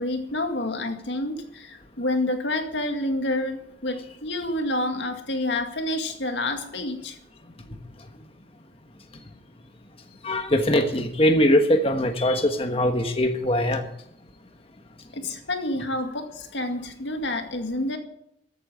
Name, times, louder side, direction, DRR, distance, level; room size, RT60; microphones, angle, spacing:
voice 1, 0.0-7.2 15.1-18.0, left 1 dB, 80° left, 5 dB, 2.2 m, -28 dB
voice 2, 10.2-13.8, left 1 dB, 30° left, 5 dB, 1.3 m, -21 dB
14.0 x 8.9 x 9.0 m, 0.75 s
head